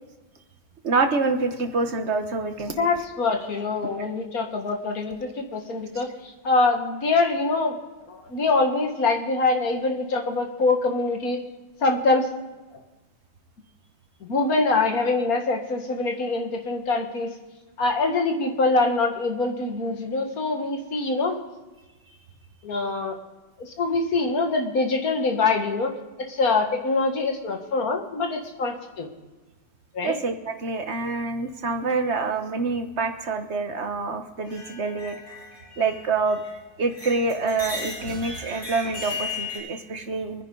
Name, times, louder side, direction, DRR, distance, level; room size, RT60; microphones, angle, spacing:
voice 1, 0.8-2.9 4.0-4.1 30.0-35.4 35.8-36.4 36.8-40.4, right 3 dB, 40° right, 6 dB, 1.4 m, -26 dB
voice 2, 2.8-7.8 8.1-11.4 11.8-12.3 14.2-17.3 17.8-21.4 22.6-23.2 23.6-25.9 26.2-29.1 29.9-30.1, left 3 dB, 50° left, 3 dB, 2.1 m, -24 dB
sound 1, 34.5-36.6 36.9-39.6, left 3 dB, 80° left, 6.8 m, -36 dB
24.5 x 10.0 x 4.0 m, 1.2 s
omnidirectional pair, 2.0 m